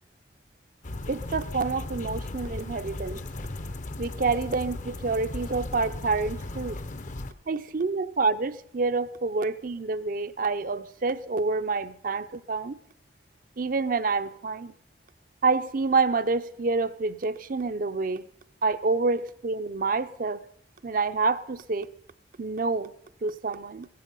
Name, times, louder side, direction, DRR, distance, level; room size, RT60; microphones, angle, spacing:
sound 1, 0.8-7.3, left 2 dB, 45° left, 0.7 m, -36 dB
voice 1, 1.1-3.2 4.0-6.8 7.5-12.8 13.6-14.7 15.4-18.2 18.6-20.4 20.8-21.9 22.4-22.9 23.2-23.9, right 4 dB, 50° right, 0.6 m, -27 dB
16.0 x 15.5 x 5.5 m
head